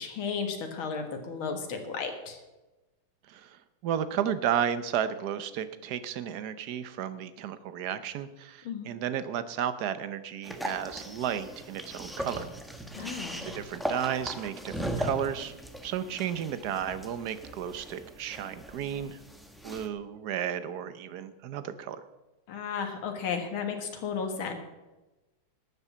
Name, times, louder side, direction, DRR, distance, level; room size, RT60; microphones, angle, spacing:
voice 1, 0.0-2.4 8.7-8.9 12.9-13.4 22.5-24.5, left 6 dB, 75° left, 4 dB, 2.4 m, -34 dB
voice 2, 3.3-12.4 13.0-13.1 13.4-15.5 15.8-19.2 19.6-22.0, right 9 dB, 60° right, 13 dB, 1.2 m, -33 dB
sound 1, 10.4-19.9, equal, ahead, 0.6 m, -38 dB
12.5 x 8.1 x 7.3 m, 1.1 s
omnidirectional pair, 2.3 m